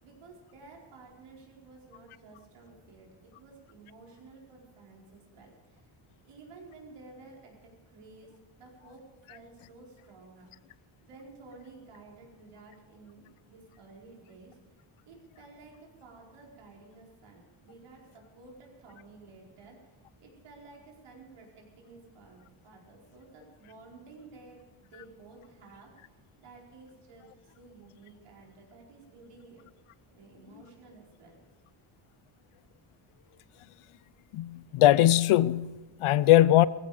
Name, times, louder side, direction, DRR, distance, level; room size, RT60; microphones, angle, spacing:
voice 1, 0.0-5.9 6.2-10.5 11.0-14.6 15.0-29.6 30.1-31.4 31.9-32.0, right 3 dB, 90° right, 4.7 m, -53 dB
voice 2, 34.3-36.7, left 14 dB, 85° left, 0.7 m, -21 dB
18.0 x 15.5 x 5.0 m
cardioid pair, 135°, 49 cm